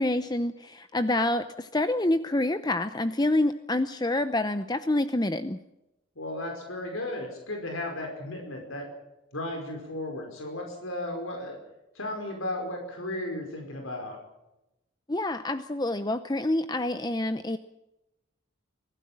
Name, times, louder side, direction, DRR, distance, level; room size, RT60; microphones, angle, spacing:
voice 1, 0.0-5.6 15.1-17.6, left 1 dB, 20° left, 11 dB, 0.7 m, -27 dB
voice 2, 6.2-8.9 9.3-11.6 12.0-14.2, left 1 dB, 90° left, 3 dB, 5.2 m, -35 dB
24.5 x 16.5 x 7.6 m, 0.94 s
head